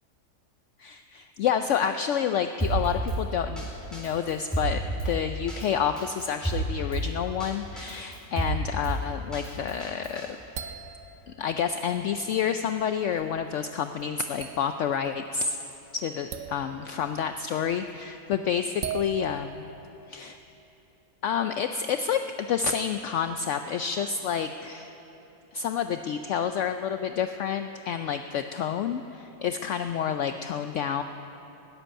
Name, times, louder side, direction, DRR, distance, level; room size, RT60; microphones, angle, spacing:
voice 1, 0.8-10.3 11.3-15.6 15.9-19.6 20.1-20.4 21.2-24.9 25.5-31.0, left 7 dB, 65° left, 8 dB, 0.8 m, -29 dB
Drum kit, 2.6-3.2 3.6-3.7 3.9-5.1 5.5-5.6 6.0-7.0 7.4-7.5 7.8-8.9 9.3-10.2, right 2 dB, ahead, 3.9 m, -30 dB
sound 1, 10.1-11.6 12.2-12.4 12.8-13.5 14.0-14.1 14.4-15.1 15.3-15.7 16.3-17.1 17.7-18.0 18.8-20.1, right 7 dB, 70° right, 1.2 m, -39 dB
18.0 x 7.9 x 10.0 m, 2.9 s
omnidirectional pair, 1.5 m